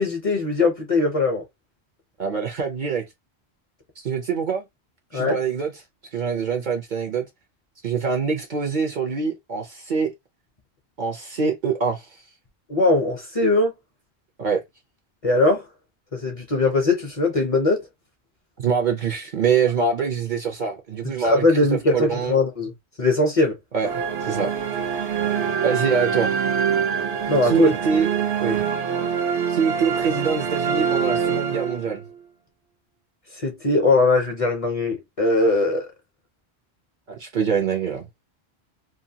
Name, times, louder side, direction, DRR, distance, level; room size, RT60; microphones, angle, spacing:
voice 1, 0.0-1.4 5.1-5.4 12.7-13.7 15.2-15.6 16.1-17.9 21.2-22.7 23.0-23.6 27.3-27.7 28.4-28.6 33.4-35.9, left 2 dB, 40° left, 0.7 m, -20 dB
voice 2, 2.2-3.0 4.0-4.6 5.1-5.7 6.1-7.3 7.8-10.1 11.0-12.1 14.4-14.6 18.6-21.4 21.7-22.4 23.7-23.9 24.2-24.5 25.6-26.3 27.4-28.1 28.4-28.6 29.5-32.0 37.1-38.1, right 6 dB, 55° right, 0.7 m, -24 dB
sound 1, 23.8-32.2, right 7 dB, 75° right, 1.0 m, -25 dB
2.8 x 2.2 x 2.7 m
omnidirectional pair, 1.1 m